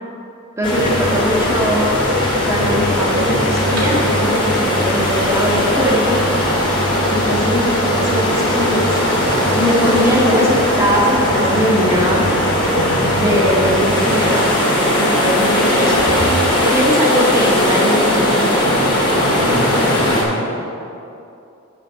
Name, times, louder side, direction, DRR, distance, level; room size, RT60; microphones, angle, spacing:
sound 1, 0.6-20.2, left 1 dB, 20° left, 1.6 m, -18 dB
voice 1, 0.6-1.8 2.4-6.2 7.1-8.9 9.5-12.3 13.1-16.0 16.6-18.6, equal, 15° right, -4 dB, 1.1 m, -20 dB
sound 2, 0.7-17.1 18.2-20.1, left 1 dB, 90° right, 2.1 m, -25 dB
voice 2, 19.4-20.8, equal, 50° left, -4 dB, 1.7 m, -28 dB
7.8 x 5.3 x 6.6 m, 2.6 s
head